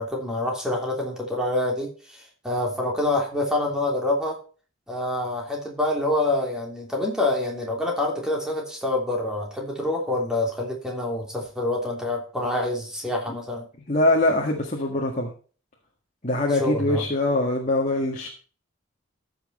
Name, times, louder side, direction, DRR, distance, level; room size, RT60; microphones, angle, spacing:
voice 1, 0.0-4.4 4.9-13.7 16.5-17.0, left 1 dB, 5° right, 0 dB, 3.1 m, -26 dB
voice 2, 13.9-15.3 16.2-18.3, left 2 dB, 35° left, 0 dB, 1.7 m, -23 dB
14.5 x 5.9 x 4.2 m, 0.38 s
head